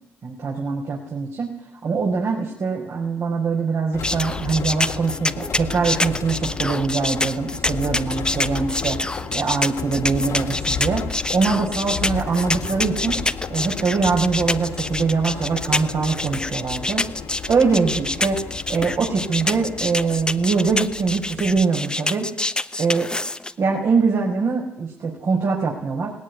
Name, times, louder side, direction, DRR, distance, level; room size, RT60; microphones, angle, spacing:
voice 1, 0.2-1.5 1.8-13.2 13.5-17.0 17.5-18.4 18.7-22.3 22.8-23.1 23.6-26.1, right 4 dB, 55° right, -1 dB, 5.5 m, -23 dB
sound 1, 3.9-21.6, left 6 dB, 65° left, 2.6 m, -33 dB
sound 2, 4.0-23.5, left 2 dB, 15° left, 1.1 m, -26 dB
18.0 x 17.5 x 9.8 m, 0.80 s
supercardioid pair, 60°, 6 cm